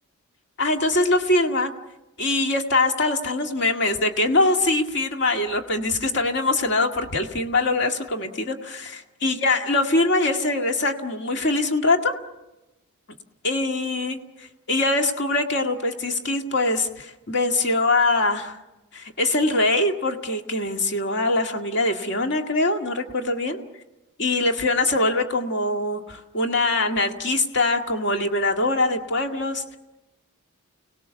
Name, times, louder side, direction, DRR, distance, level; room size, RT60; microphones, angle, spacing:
voice 1, 0.6-1.7 2.2-12.2 13.4-14.2 14.7-18.6 18.9-23.6 24.2-29.8, left 2 dB, 55° left, 4 dB, 1.9 m, -23 dB
30.0 x 19.0 x 7.0 m, 0.99 s
head